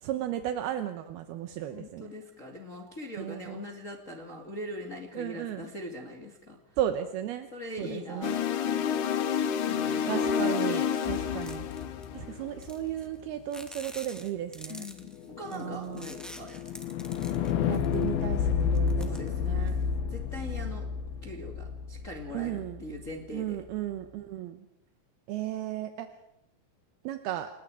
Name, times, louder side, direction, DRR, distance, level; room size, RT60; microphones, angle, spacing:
voice 1, 0.0-2.1 3.2-3.6 5.2-5.6 6.8-7.5 7.8-8.4 10.1-11.7 12.1-14.8 15.5-16.1 17.7-19.8 22.3-22.8 23.3-24.6 25.3-26.1 27.0-27.5, right 12 dB, 75° right, 8 dB, 2.7 m, -35 dB
voice 2, 1.7-6.6 7.5-8.3 8.6-8.9 9.7-10.2 14.7-16.7 19.0-19.7 20.1-20.9 21.2-23.6, left 1 dB, 25° left, 1 dB, 1.8 m, -41 dB
sound 1, 8.2-12.6, left 7 dB, 80° left, 1.7 m, -29 dB
sound 2, 10.9-12.1 12.6-13.2 13.5-18.2 18.6-19.9, equal, ahead, 0.4 m, -47 dB
sound 3, 11.1-13.2 15.1-23.1, left 6 dB, 65° left, 2.8 m, -32 dB
29.5 x 23.0 x 4.9 m, 0.80 s
omnidirectional pair, 5.2 m